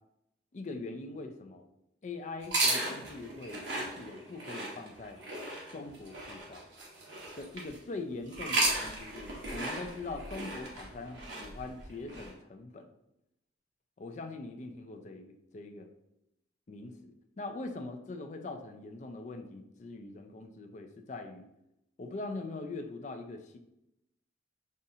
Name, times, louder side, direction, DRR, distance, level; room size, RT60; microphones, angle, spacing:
voice 1, 0.5-1.7 2.0-5.2 5.7-6.6 7.4-12.9 14.0-15.9 16.7-21.5 22.0-23.6, left 3 dB, 40° left, 6 dB, 0.4 m, -42 dB
sound 1, 2.4-7.8 8.3-12.3, right 2 dB, 75° right, 1.0 m, -35 dB
5.4 x 2.5 x 2.7 m, 0.85 s
head